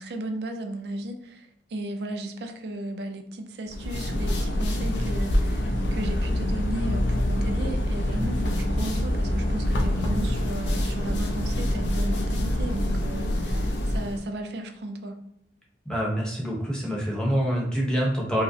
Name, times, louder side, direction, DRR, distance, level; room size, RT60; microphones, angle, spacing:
voice 1, 0.0-15.2, right 1 dB, 60° right, 0.4 m, -35 dB
sound 1, 3.7-14.2, left 1 dB, 70° left, 0.5 m, -26 dB
voice 2, 15.8-18.4, equal, 5° left, 0.8 m, -26 dB
4.7 x 2.0 x 2.7 m
head